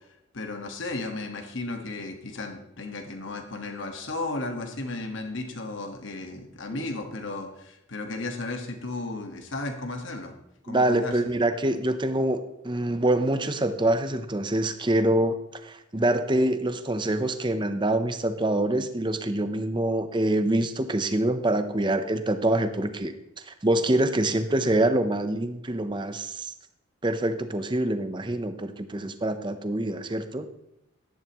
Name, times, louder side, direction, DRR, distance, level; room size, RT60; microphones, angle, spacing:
voice 1, 0.3-10.3 10.6-11.2, left 2 dB, 60° left, 4 dB, 1.4 m, -34 dB
voice 2, 10.7-23.1 23.5-26.5 27.0-30.5, right 1 dB, 20° right, 9 dB, 0.6 m, -25 dB
12.0 x 10.5 x 3.0 m, 0.85 s
head